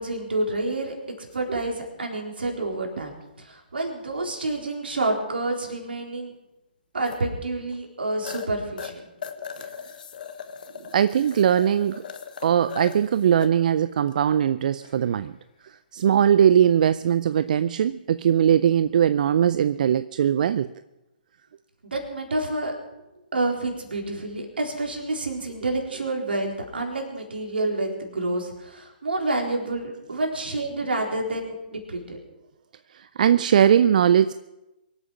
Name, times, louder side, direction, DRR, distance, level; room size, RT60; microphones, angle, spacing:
voice 1, 0.0-6.3 6.9-9.1 21.9-22.7 23.3-32.2, right 2 dB, 75° right, 1 dB, 4.0 m, -28 dB
sound 1, 1.3-1.5 3.9-4.0 7.1-7.2 7.7-7.8 8.2-8.5 8.8-13.5 14.0-14.1 14.8-15.3 18.8-19.0, left 7 dB, 55° left, 1.5 m, -39 dB
voice 2, 10.9-12.1 12.4-15.4 15.6-20.7 32.9-34.3, right 9 dB, 50° right, 14 dB, 0.4 m, -20 dB
23.5 x 8.5 x 5.9 m, 0.96 s
figure-of-eight pair, 135°, 5 cm